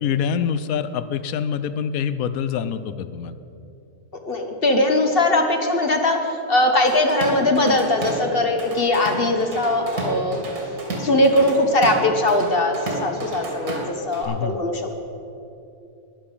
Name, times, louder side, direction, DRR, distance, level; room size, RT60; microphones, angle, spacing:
voice 1, 0.0-3.3 14.2-14.6, left 7 dB, 70° left, 13 dB, 1.0 m, -25 dB
voice 2, 4.2-10.4 11.0-15.0, left 1 dB, 40° left, 4 dB, 1.2 m, -20 dB
Drum kit / Drum, 6.9-8.3 8.6-14.2, right 2 dB, 70° right, 2.6 m, -31 dB
20.5 x 7.0 x 5.5 m, 2.7 s
omnidirectional pair, 1.6 m